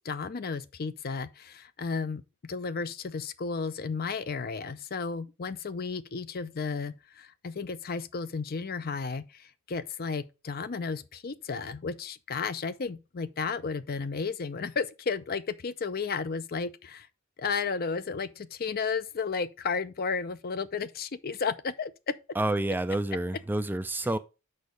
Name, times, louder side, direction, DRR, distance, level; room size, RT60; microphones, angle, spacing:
voice 1, 0.0-17.1 17.4-22.1, left 5 dB, 45° left, 0.5 m, -33 dB
voice 2, 22.4-24.2, right 1 dB, 10° right, 0.4 m, -28 dB
6.4 x 5.3 x 5.1 m
head